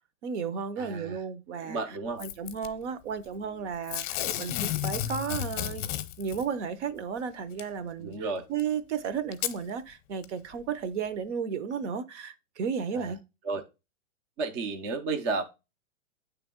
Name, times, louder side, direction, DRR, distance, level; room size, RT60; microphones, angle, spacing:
voice 1, 0.2-1.8 2.2-5.8 6.2-8.1 8.5-13.2, right 6 dB, 65° right, 0.9 m, -33 dB
voice 2, 0.8-1.2 1.6-2.2 8.0-8.4 12.9-13.1 13.4-13.6 14.4-15.4, right 4 dB, 20° right, 0.3 m, -32 dB
Packing tape duct tape / Tearing, 2.2-2.7 3.9-6.4 7.6-7.7 8.6-8.7 9.3-9.6 10.2-10.3, left 12 dB, 40° left, 0.7 m, -32 dB
8.1 x 3.4 x 3.6 m
hypercardioid pair, 140°, 38 cm